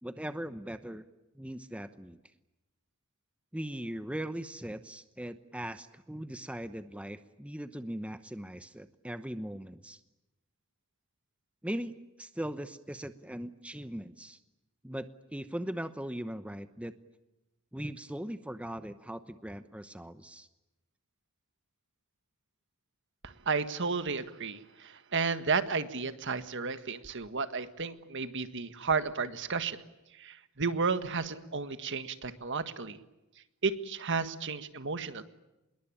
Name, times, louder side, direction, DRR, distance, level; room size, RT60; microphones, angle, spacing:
voice 1, 0.0-1.0 1.3-2.2 3.5-10.0 11.6-14.4 14.8-17.0 17.7-20.5, right 1 dB, 5° right, 11 dB, 0.9 m, -39 dB
voice 2, 23.2-29.8 30.2-33.0 33.6-35.2, right 4 dB, 60° right, 11 dB, 1.7 m, -33 dB
26.5 x 22.0 x 8.9 m, 0.96 s
head